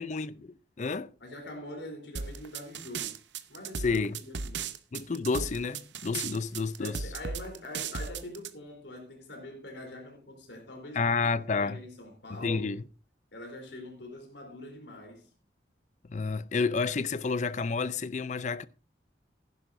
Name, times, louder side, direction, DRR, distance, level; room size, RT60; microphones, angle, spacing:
voice 1, 0.0-1.1 3.8-4.2 4.9-7.0 10.9-11.8 12.3-12.8 16.1-18.7, left 4 dB, 40° left, 0.5 m, -30 dB
voice 2, 1.2-3.2 3.5-4.7 6.7-11.0 11.5-12.8 13.3-15.3, left 1 dB, 75° left, 3.6 m, -44 dB
sound 1, 2.1-8.5, right 5 dB, 80° right, 0.7 m, -36 dB
15.5 x 11.0 x 2.6 m
head